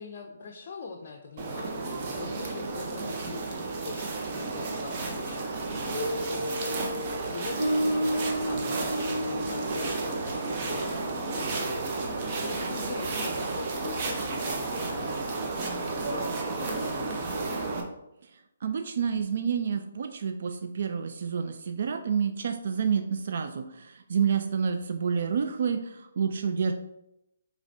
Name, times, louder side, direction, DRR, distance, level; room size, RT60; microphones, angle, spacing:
voice 1, 0.0-17.6, left 5 dB, 50° left, 2 dB, 0.5 m, -43 dB
sound 1, 1.4-17.8, right 3 dB, 35° right, 0.7 m, -32 dB
Guitar, 5.8-12.5, equal, 85° right, 1.5 m, -33 dB
voice 2, 18.6-26.7, right 6 dB, 60° right, 6 dB, 0.3 m, -29 dB
4.9 x 3.1 x 2.6 m, 0.87 s
hypercardioid pair, 145°, 0 cm